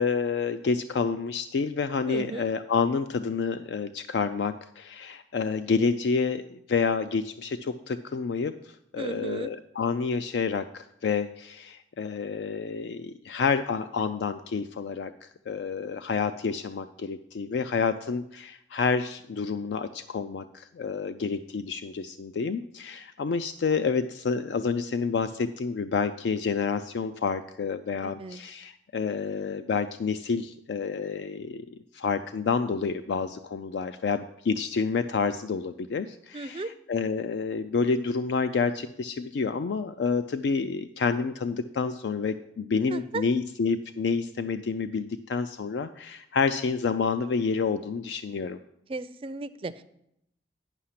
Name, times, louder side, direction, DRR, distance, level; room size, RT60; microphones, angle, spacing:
voice 1, 0.0-48.6, left 5 dB, 70° left, 10 dB, 0.3 m, -29 dB
voice 2, 2.1-2.5 9.0-9.5 28.0-28.4 36.3-36.7 42.9-43.2 48.9-49.8, right 3 dB, 30° right, 12 dB, 0.4 m, -35 dB
9.9 x 5.7 x 5.7 m, 0.77 s
head